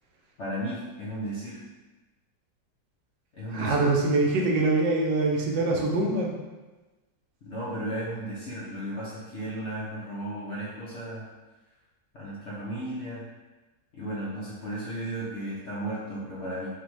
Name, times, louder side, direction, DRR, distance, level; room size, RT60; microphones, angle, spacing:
voice 1, 0.4-1.6 3.3-3.9 7.4-11.3 12.1-13.2 13.9-16.7, right 1 dB, 60° left, -7 dB, 0.7 m, -34 dB
voice 2, 3.5-6.3, right 2 dB, 80° right, 0 dB, 1.4 m, -24 dB
5.0 x 2.3 x 3.0 m, 1.2 s
omnidirectional pair, 1.9 m